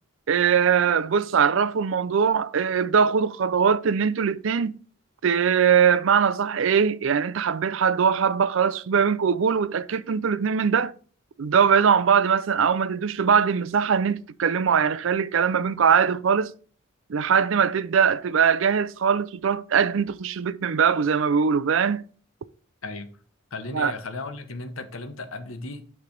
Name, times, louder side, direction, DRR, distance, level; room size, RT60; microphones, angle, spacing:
voice 1, 0.3-4.8 5.2-10.9 11.4-16.5 17.1-22.0 23.7-23.9, right 6 dB, 70° right, 0.4 m, -21 dB
voice 2, 23.5-25.8, left 3 dB, 85° left, 1.0 m, -35 dB
9.3 x 3.3 x 5.1 m
head